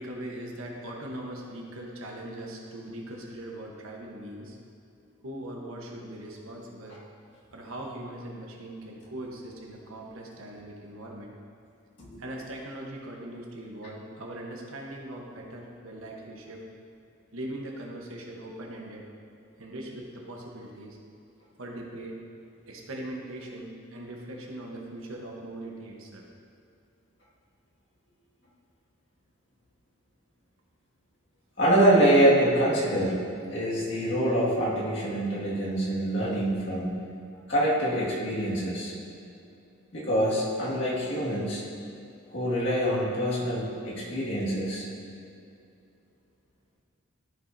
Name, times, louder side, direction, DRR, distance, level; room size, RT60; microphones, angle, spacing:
voice 1, 0.0-4.6 5.2-7.0 7.5-11.3 12.2-16.7 17.3-19.0 19.6-21.0 21.6-22.2 22.7-26.2, right 1 dB, 80° right, -1 dB, 1.1 m, -40 dB
voice 2, 31.6-33.2 33.5-37.0 37.5-38.9 39.9-41.6 42.3-44.9, right 1 dB, 55° left, -7 dB, 2.0 m, -25 dB
13.0 x 5.4 x 2.7 m, 2.5 s
head